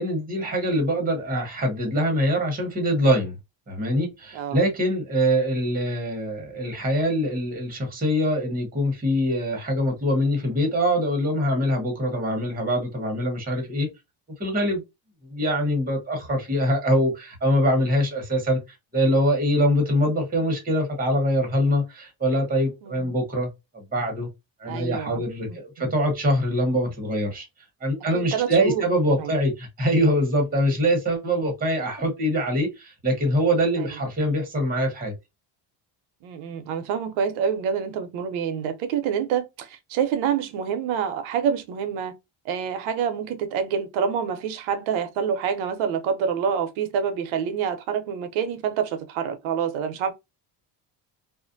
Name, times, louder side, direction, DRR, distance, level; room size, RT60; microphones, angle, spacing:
voice 1, 0.0-3.3 3.7-13.9 14.4-14.8 15.3-18.6 18.9-24.3 24.6-27.5 27.8-35.1, equal, 20° right, 1.0 m, -23 dB
voice 2, 22.8-23.1 24.6-25.2 25.8-25.9 28.1-28.9 29.2-29.3 33.8-34.0 36.2-42.1 42.4-50.1, right 7 dB, 90° right, 0.7 m, -27 dB
2.4 x 2.1 x 2.5 m
cardioid pair, 120°, 47 cm